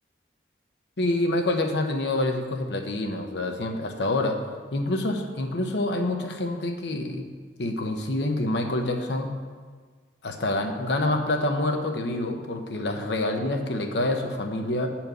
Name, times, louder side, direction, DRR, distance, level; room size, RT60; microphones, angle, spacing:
voice 1, 1.0-4.4 4.7-7.3 7.6-9.3 10.2-14.9, left 2 dB, 75° left, 4 dB, 0.9 m, -27 dB
9.0 x 4.4 x 6.8 m, 1.5 s
head